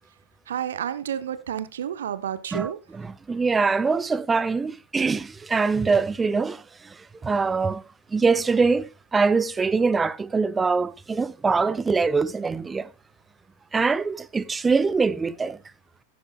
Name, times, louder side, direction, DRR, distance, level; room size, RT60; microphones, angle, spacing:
voice 1, 0.5-2.8, right 9 dB, 65° right, 1.0 m, -30 dB
voice 2, 3.3-6.6 7.2-7.8 8.1-12.9 13.7-15.6, right 4 dB, 15° right, 0.6 m, -23 dB
15.0 x 10.0 x 2.4 m
figure-of-eight pair, 90°, 0 cm